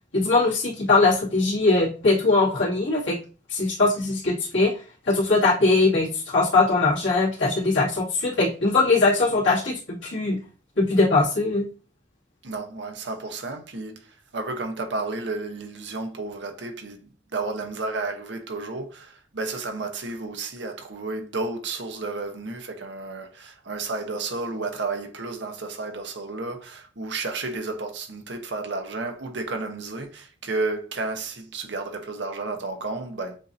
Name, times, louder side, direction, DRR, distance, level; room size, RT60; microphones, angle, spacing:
voice 1, 0.1-3.2 3.5-4.7 5.1-10.4 10.8-11.7, left 3 dB, 80° left, 2.2 m, -21 dB
voice 2, 12.4-33.4, right 3 dB, 65° right, 0.9 m, -32 dB
7.3 x 2.6 x 2.6 m
head